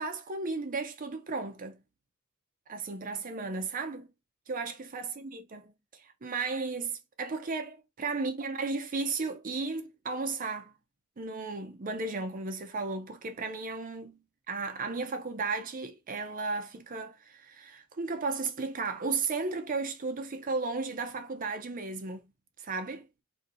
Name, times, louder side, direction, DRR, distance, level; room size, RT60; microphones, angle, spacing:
voice 1, 0.0-1.8 2.7-4.1 4.5-10.7 11.2-14.2 14.5-22.3 22.6-23.1, right 4 dB, 40° right, 0.5 m, -34 dB
2.7 x 2.6 x 3.8 m
head